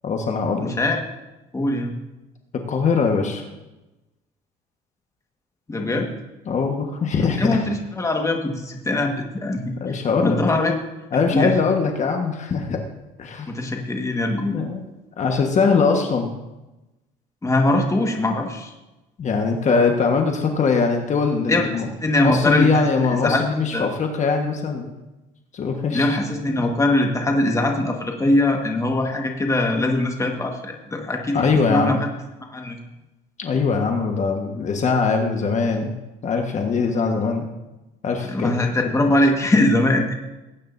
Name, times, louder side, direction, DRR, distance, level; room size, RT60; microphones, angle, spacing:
voice 1, 0.0-0.7 2.7-3.4 6.5-7.6 9.8-10.4 11.1-12.8 13.2-13.5 14.5-14.8 15.2-16.4 19.2-21.9 22.2-24.9 25.5-26.2 31.3-32.0 33.4-35.9 36.2-37.5 38.0-38.5 38.8-38.9, left 5 dB, 45° left, 3 dB, 1.4 m, -21 dB
voice 2, 0.6-1.0 1.5-1.9 5.7-6.1 7.4-10.7 11.3-11.5 13.5-14.6 17.4-18.7 21.5-22.9 23.2-23.4 23.7-23.9 25.9-32.1 32.5-32.8 38.2-40.1, left 2 dB, 20° left, 2 dB, 1.6 m, -22 dB
18.5 x 9.2 x 2.7 m, 1.0 s
cardioid pair, 110°, 17 cm